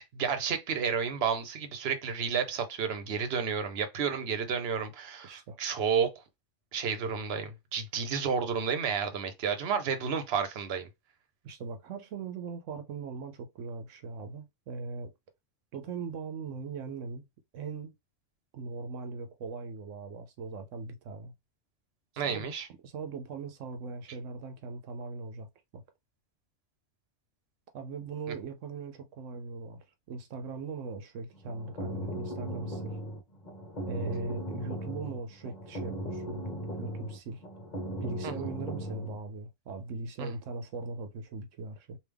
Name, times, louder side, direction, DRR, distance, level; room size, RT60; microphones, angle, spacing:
voice 1, 0.0-6.1 6.7-10.9 22.2-22.7 28.3-28.4 38.2-38.3 40.2-40.3, right 6 dB, 60° right, 1.0 m, -31 dB
voice 2, 5.2-5.6 11.4-15.1 15.7-17.2 17.5-17.9 18.5-21.3 22.1-22.5 22.8-25.5 25.7-25.8 27.7-33.0 33.9-36.4 36.8-37.4 38.0-42.0, right 4 dB, 85° right, 1.0 m, -40 dB
sound 1, 31.3-39.2, right 1 dB, 35° left, 1.3 m, -38 dB
3.4 x 2.6 x 3.3 m
omnidirectional pair, 1.3 m